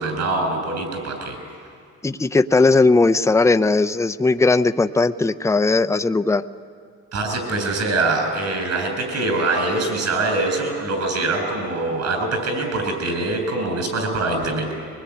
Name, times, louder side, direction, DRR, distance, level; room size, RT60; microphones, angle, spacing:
voice 1, 0.0-1.4 7.1-14.7, right 2 dB, 60° right, 4 dB, 7.6 m, -23 dB
voice 2, 2.0-6.4, left 3 dB, 10° left, 10 dB, 0.6 m, -18 dB
23.0 x 21.0 x 9.8 m, 2.2 s
cardioid pair, 90°, 30 cm